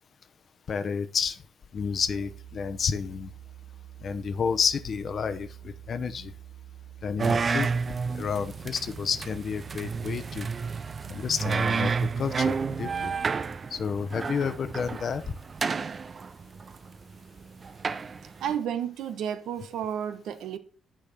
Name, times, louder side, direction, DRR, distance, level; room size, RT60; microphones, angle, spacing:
voice 1, 0.7-1.4 1.7-3.3 4.0-6.3 7.0-7.7 8.1-10.5 11.1-13.1 13.7-15.2, left 6 dB, 50° left, 0.9 m, -30 dB
sound 1, 1.8-13.2, right 11 dB, 20° right, 2.3 m, -47 dB
sound 2, 7.2-18.6, right 5 dB, 40° right, 0.5 m, -31 dB
voice 2, 18.4-20.6, right 9 dB, 80° right, 1.1 m, -31 dB
10.5 x 4.8 x 5.8 m
cardioid pair, 90°, 0 cm